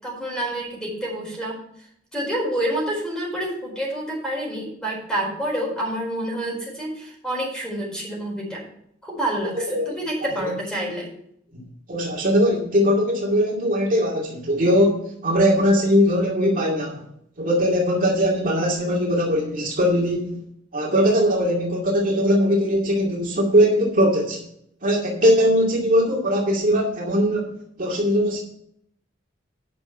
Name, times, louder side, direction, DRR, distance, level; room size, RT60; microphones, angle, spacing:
voice 1, 0.0-1.6 2.1-8.6 9.0-11.1, right 1 dB, 5° left, -2 dB, 4.4 m, -28 dB
voice 2, 9.5-10.0 10.3-10.4 11.5-11.6 11.9-17.1 17.4-20.4 20.7-24.4 24.8-27.5 27.8-28.4, equal, 45° right, -2 dB, 2.2 m, -20 dB
9.8 x 6.2 x 5.5 m, 0.71 s
head